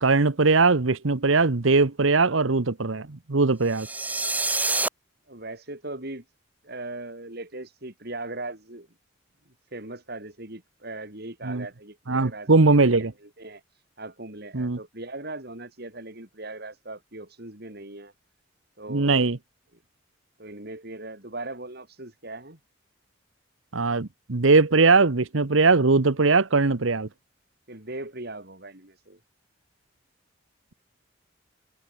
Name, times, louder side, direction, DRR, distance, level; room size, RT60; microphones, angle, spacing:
voice 1, 0.0-3.9 11.4-11.6 12.1-13.1 14.5-14.8 18.9-19.4 23.7-27.1, right 3 dB, 85° right, 1.1 m, -20 dB
sound 1, 3.7-4.9, right 3 dB, 10° right, 0.8 m, -26 dB
voice 2, 5.3-6.2 6.6-8.9 9.7-18.1 18.8-19.3 20.4-22.6 27.7-29.2, right 2 dB, 55° right, 4.7 m, -39 dB
head